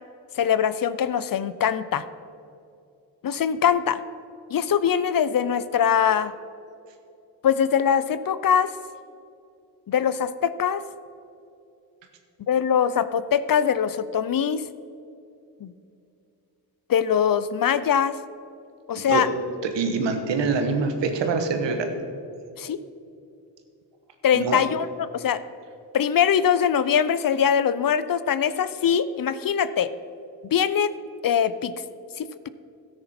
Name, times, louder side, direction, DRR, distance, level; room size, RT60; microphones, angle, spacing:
voice 1, 0.4-2.1 3.2-4.0 4.5-6.3 7.4-8.7 9.9-10.8 12.4-14.6 15.6-15.7 16.9-18.2 18.9-19.3 22.6-22.8 24.2-25.4 25.9-29.9 30.5-30.9 31.2-31.7 32.2-32.5, left 8 dB, 50° left, 15 dB, 0.6 m, -22 dB
voice 2, 19.7-21.9 24.3-24.6, right 4 dB, 85° right, 6 dB, 1.3 m, -24 dB
13.0 x 9.7 x 4.3 m, 2.6 s
cardioid pair, 50°, 43 cm